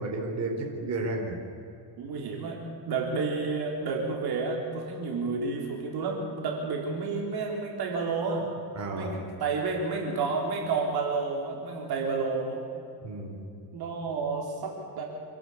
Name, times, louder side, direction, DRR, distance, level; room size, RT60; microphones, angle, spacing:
voice 1, 0.0-1.3 8.7-9.1 13.0-13.4, right 2 dB, 35° right, 1 dB, 4.2 m, -32 dB
voice 2, 2.0-2.6 2.9-8.5 8.9-12.6 13.7-15.0, right 4 dB, 55° right, 0 dB, 4.0 m, -30 dB
27.5 x 12.0 x 8.6 m, 2.5 s
cardioid pair, 115°, 45 cm